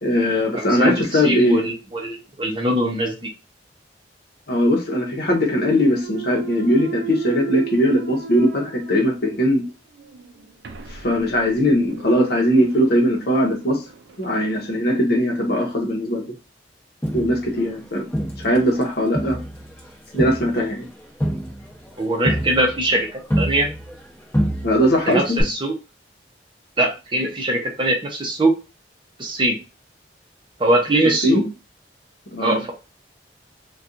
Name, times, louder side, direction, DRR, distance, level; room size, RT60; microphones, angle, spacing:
voice 1, 0.0-1.7 4.5-9.6 10.9-13.8 14.2-16.3 17.1-18.0 18.4-19.4 20.1-20.8 24.6-25.4 31.2-31.5 32.3-32.6, equal, 60° left, 2 dB, 0.9 m, -20 dB
voice 2, 0.5-3.3 22.0-23.7 25.1-25.7 26.8-28.6 29.2-29.6 30.6-31.4 32.4-32.7, right 1 dB, 25° right, 2 dB, 0.6 m, -22 dB
Thump thud, 5.5-9.5 10.0-14.6, right 6 dB, 70° right, 0.4 m, -36 dB
Crowd, 17.0-18.8 19.1-24.1 24.3-25.0 25.4-25.5, equal, 15° left, 0.9 m, -27 dB
4.1 x 2.3 x 2.5 m, 0.30 s
head